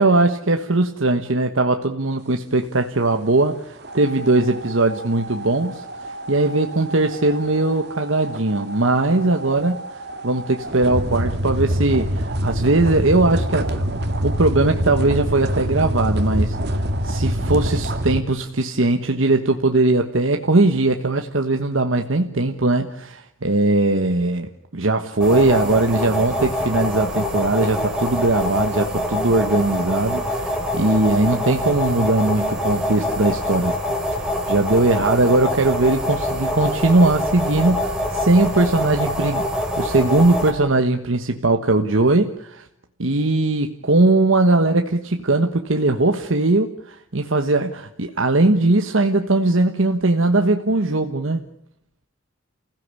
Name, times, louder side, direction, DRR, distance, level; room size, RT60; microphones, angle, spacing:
voice 1, 0.0-13.9 14.2-33.8 34.2-42.7 43.0-51.4, right 2 dB, 75° right, 5 dB, 1.3 m, -20 dB
sound 1, 3.8-18.2, equal, 55° right, 2.0 m, -26 dB
sound 2, 25.2-40.5, left 1 dB, 5° right, 3.9 m, -25 dB
29.0 x 16.5 x 8.4 m, 0.75 s
head